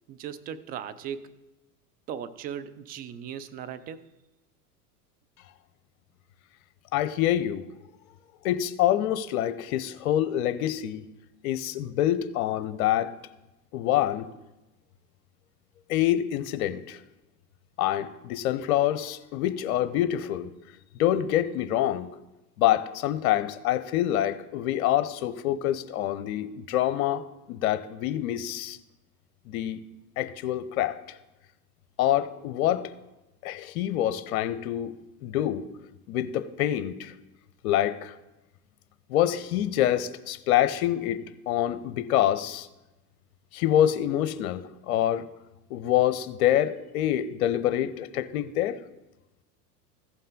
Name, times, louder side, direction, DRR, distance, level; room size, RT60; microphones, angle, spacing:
voice 1, 0.1-1.3 2.1-4.0, right 8 dB, 20° right, 0.3 m, -37 dB
voice 2, 6.9-7.6 8.4-11.0 11.4-13.1 13.7-14.3 15.9-17.0 17.8-20.5 20.9-22.1 22.6-28.8 29.5-29.8 30.2-31.0 32.0-32.9 33.4-35.7 36.1-37.1 37.6-38.1 39.1-42.7 43.5-45.3 45.7-48.8, left 12 dB, 60° left, 0.8 m, -26 dB
15.0 x 5.4 x 3.8 m
figure-of-eight pair, 80°, 48 cm